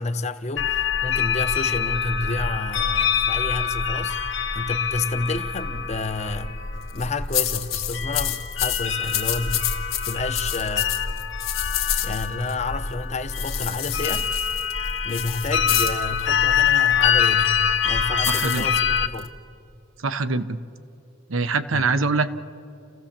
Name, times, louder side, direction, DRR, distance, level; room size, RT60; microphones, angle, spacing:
voice 1, 0.0-6.6 6.9-9.6 10.1-11.0 12.0-14.3 15.0-19.4 21.7-22.0, left 3 dB, 35° left, 0.8 m, -30 dB
sound 1, 0.6-19.1, left 7 dB, 60° left, 0.9 m, -25 dB
sound 2, 6.8-7.1 7.3-12.5 13.3-16.0 18.2-19.3, left 13 dB, 85° left, 1.6 m, -28 dB
voice 2, 18.3-18.6 20.0-20.6 21.3-22.3, right 3 dB, 75° right, 0.8 m, -23 dB
29.0 x 15.0 x 7.4 m
head